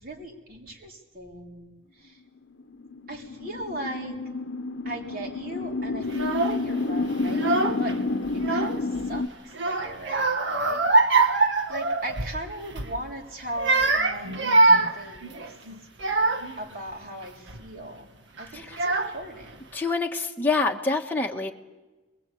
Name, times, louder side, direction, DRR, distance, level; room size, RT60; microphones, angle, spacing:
voice 1, 0.0-1.7 2.0-2.1 3.1-4.2 4.9-7.5 7.8-8.0 8.3-9.3 9.7-11.4 11.7-15.4 16.6-18.0 18.4-19.6, right 1 dB, 50° right, 1 dB, 3.9 m, -38 dB
sound 1, 2.6-9.3, left 3 dB, 85° left, 0.9 m, -30 dB
Child speech kid speaking / Crying sobbing, 6.1-6.6 7.3-7.9 8.2-9.1 9.5-12.4 12.7-13.0 13.5-16.6 17.2-17.6 18.4-18.5 18.7-19.4, right 3 dB, 75° right, 1.9 m, -23 dB
voice 2, 18.5-18.9 19.7-21.5, left 3 dB, 10° left, 0 dB, 1.4 m, -26 dB
27.5 x 21.0 x 8.5 m, 1.1 s
head